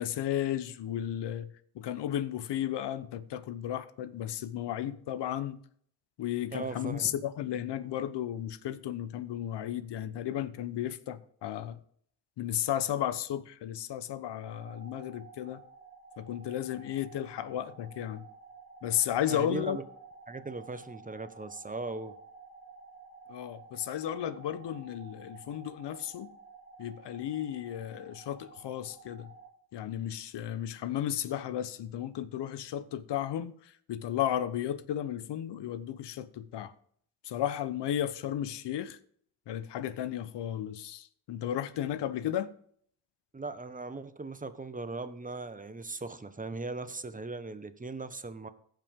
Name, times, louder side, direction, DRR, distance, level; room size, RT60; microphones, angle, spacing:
voice 1, 0.0-5.6 6.2-11.8 12.4-15.6 16.2-18.3 18.8-19.8 23.3-26.3 26.8-29.3 29.7-36.7 37.2-39.0 39.5-42.5, left 11 dB, 70° left, 0.9 m, -34 dB
voice 2, 6.5-7.1 19.3-19.8 20.3-22.1 43.3-48.5, right 3 dB, 20° right, 1.0 m, -38 dB
sound 1, 14.4-29.5, right 4 dB, 50° left, 4.8 m, -52 dB
16.5 x 5.8 x 3.6 m
cardioid pair, 65°, 43 cm